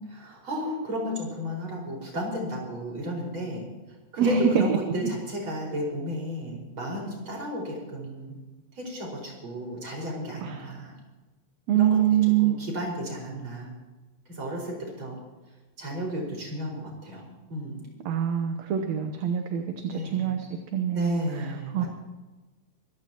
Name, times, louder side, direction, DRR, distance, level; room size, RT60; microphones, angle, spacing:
voice 1, 0.1-3.6 4.1-8.4 8.8-11.0 11.7-12.0 12.4-13.7 14.3-15.2 15.8-17.9 19.9-20.3 20.9-21.9, equal, 40° right, -2 dB, 6.1 m, -33 dB
voice 2, 4.2-4.5 10.4-10.7 11.7-12.6 18.1-20.5 20.7-21.1 21.4-21.5 21.7-21.9, right 9 dB, 65° right, 4 dB, 2.2 m, -24 dB
24.5 x 15.5 x 3.0 m, 1.2 s
omnidirectional pair, 3.5 m